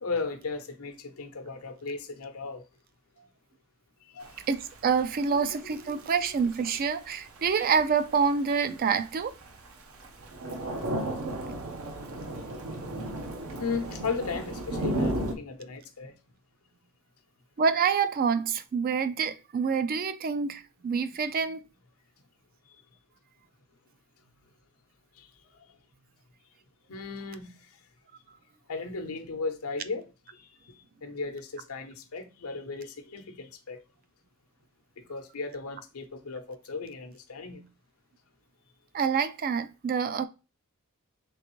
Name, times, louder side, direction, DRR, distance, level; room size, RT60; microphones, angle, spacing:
voice 1, 0.0-2.6 4.1-4.3 13.6-16.1 26.9-27.5 28.7-30.0 30.3-30.4 31.0-33.8 35.1-37.6, left 4 dB, 80° left, 0.8 m, -35 dB
Thunder / Rain, 4.2-15.3, right 1 dB, 75° right, 0.7 m, -35 dB
voice 2, 4.5-9.3 17.6-21.6 38.9-40.3, right 6 dB, 40° right, 0.3 m, -27 dB
3.7 x 3.4 x 3.0 m
head